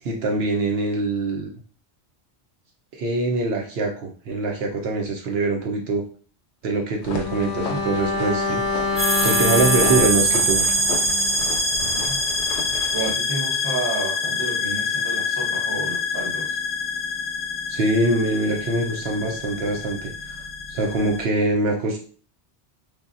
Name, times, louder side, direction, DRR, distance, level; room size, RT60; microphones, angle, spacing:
voice 1, 0.0-1.5 2.9-6.0 6.6-8.9 9.2-10.7 17.7-20.4 20.7-22.0, right 2 dB, 70° right, 0 dB, 0.8 m, -24 dB
sound 1, 7.0-13.1, left 4 dB, 85° left, 0.9 m, -34 dB
Bowed string instrument, 7.1-11.5 11.8-12.0, left 4 dB, 50° left, 0.6 m, -27 dB
voice 2, 7.5-7.8 11.7-12.2 12.9-16.6, right 3 dB, 25° right, -2 dB, 0.7 m, -31 dB
sound 2, 9.0-21.2, left 1 dB, 5° right, 1.0 m, -25 dB
3.3 x 2.2 x 2.5 m, 0.42 s
omnidirectional pair, 1.1 m